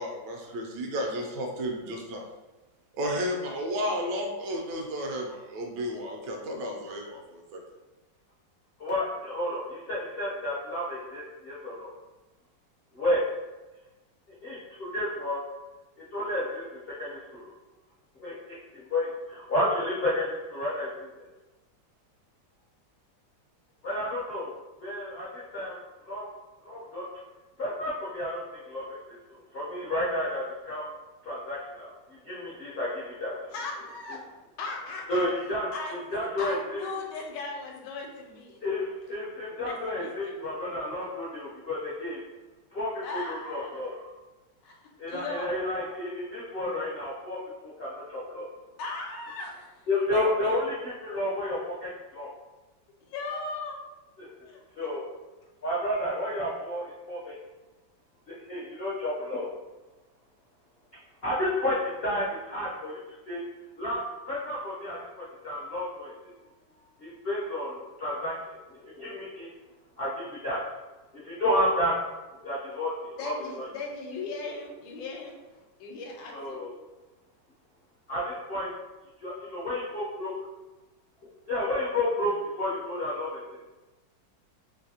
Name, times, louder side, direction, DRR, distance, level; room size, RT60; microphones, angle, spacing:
voice 1, 0.0-2.3 3.0-7.6, equal, 75° right, 1 dB, 1.2 m, -33 dB
voice 2, 8.8-11.9 12.9-13.3 14.4-15.4 16.0-17.5 18.2-21.3 23.8-24.5 24.8-26.3 26.6-27.0 27.6-29.2 29.5-30.9 31.2-33.5 35.1-35.7 36.1-36.9 38.6-42.2 42.7-44.1 45.0-48.5 49.9-52.3 54.2-54.3 54.8-55.1 55.6-57.3 58.3-59.5 61.2-63.0 63.3-63.4 63.8-64.0 64.3-66.1 67.0-68.3 68.7-69.5 70.0-70.6 71.1-71.9 72.4-73.6 76.3-76.7 78.1-78.7 79.2-80.3 81.5-83.4, left 1 dB, 65° left, -8 dB, 0.6 m, -31 dB
voice 3, 33.5-35.3 35.7-38.6 39.6-40.4 43.0-43.7 44.6-45.5 48.8-49.7 50.1-50.5 53.1-53.9 54.4-54.9 73.2-76.6, left 3 dB, 80° left, 0 dB, 1.3 m, -38 dB
3.3 x 2.6 x 2.7 m, 1.1 s
omnidirectional pair, 2.0 m